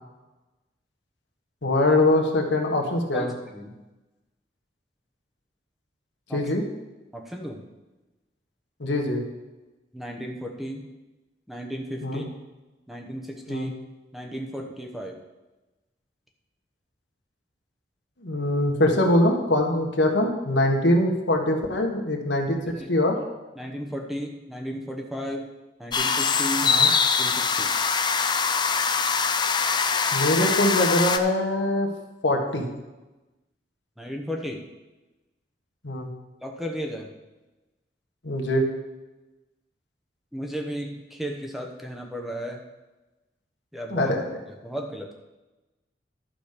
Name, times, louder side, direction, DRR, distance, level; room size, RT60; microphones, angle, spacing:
voice 1, 1.6-3.3 6.3-6.6 8.8-9.2 12.0-12.2 13.5-13.7 18.2-23.2 26.6-26.9 30.1-31.9 32.2-32.7 35.8-36.1 38.2-38.6 43.9-44.2, left 1 dB, 80° left, 1 dB, 1.6 m, -23 dB
voice 2, 3.1-3.8 6.3-6.4 7.1-7.6 9.9-10.9 11.5-12.3 12.9-13.7 14.1-15.2 22.8-22.9 23.6-25.5 25.8-26.7 27.2-27.8 34.0-34.6 36.4-37.1 40.3-42.6 43.7-44.4 44.6-45.1, equal, ahead, 1 dB, 0.9 m, -34 dB
sound 1, 25.9-31.2, left 5 dB, 25° left, 0.5 m, -23 dB
11.5 x 5.1 x 6.7 m, 1.1 s
head